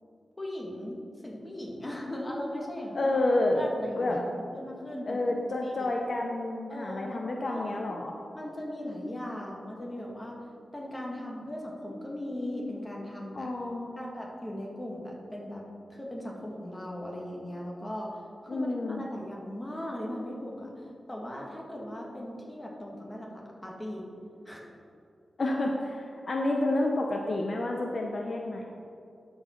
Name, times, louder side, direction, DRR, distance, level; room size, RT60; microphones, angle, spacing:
voice 1, 0.4-3.2 3.6-4.2 4.5-5.3 5.6-5.9 6.7-7.9 8.3-10.4 10.7-13.5 14.0-15.6 15.9-18.2 18.4-20.7 21.1-24.0 24.5-24.6, left 1 dB, 15° left, -2 dB, 1.7 m, -38 dB
voice 2, 2.9-3.7 4.0-4.2 5.1-8.2 13.3-13.9 18.5-19.0 25.4-28.7, left 2 dB, 55° left, 1 dB, 0.7 m, -29 dB
12.0 x 4.7 x 4.4 m, 2.5 s
wide cardioid pair, 90°, 0 cm